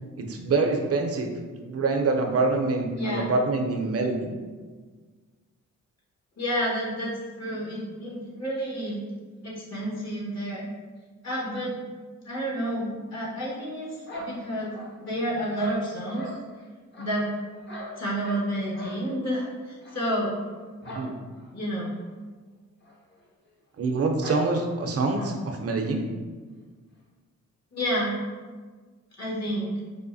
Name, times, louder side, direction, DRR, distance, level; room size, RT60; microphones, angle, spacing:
voice 1, 0.2-1.3 1.6-4.4 20.8-21.1 23.8-26.0, right 3 dB, 50° right, 3 dB, 0.6 m, -25 dB
voice 2, 2.9-3.3 6.4-9.0 9.4-10.6 11.2-11.7 12.2-14.7 15.0-16.4 17.0-17.2 18.0-20.4 21.5-21.9 27.7-28.1 29.2-29.8, equal, 55° left, -5 dB, 1.4 m, -30 dB
sound 1, 14.1-15.1 15.5-16.4 16.9-18.5 18.7-19.0 19.3-19.5 19.8-20.0 20.8-21.1 21.4-21.5 21.9-22.0 22.8-22.9 23.2-23.3 24.2-24.5 25.1-25.4, equal, 35° left, 0.8 m, -39 dB
4.8 x 2.1 x 2.6 m, 1.4 s
cardioid pair, 65°, 32 cm